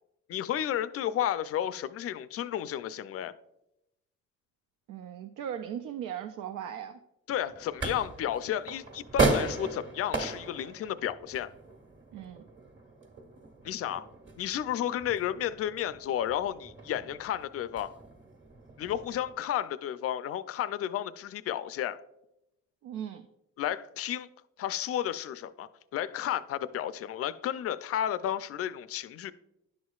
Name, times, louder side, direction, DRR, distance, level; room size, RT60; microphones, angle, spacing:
voice 1, 0.3-3.3 7.3-11.5 13.6-14.1 14.4-17.9 18.8-22.0 23.6-24.3 24.6-29.3, left 11 dB, 50° left, 0.4 m, -32 dB
voice 2, 4.9-7.0 12.1-12.4 22.8-23.3, right 9 dB, 90° right, 0.5 m, -38 dB
sound 1, 7.3-19.3, right 3 dB, 40° right, 1.5 m, -36 dB
10.5 x 6.3 x 2.3 m
cardioid pair, 90°, 30 cm